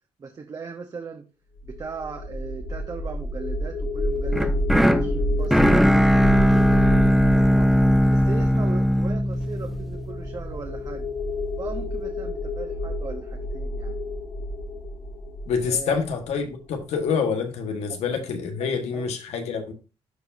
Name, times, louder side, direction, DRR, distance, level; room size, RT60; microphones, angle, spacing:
voice 1, 0.2-1.3 1.6-4.5 4.9-6.1 6.3-7.7 8.1-11.0 11.6-14.0 15.6-16.1 17.9-18.0 18.6-19.1, right 5 dB, 35° right, 4 dB, 0.9 m, -38 dB
sound 1, 1.6-16.7, equal, 65° left, 3.6 m, -29 dB
sound 2, 4.3-10.4, equal, ahead, 0.5 m, -19 dB
voice 2, 15.5-19.7, left 5 dB, 85° left, 5 dB, 1.4 m, -27 dB
13.0 x 4.7 x 2.6 m, 0.31 s
cardioid pair, 120°, 11 cm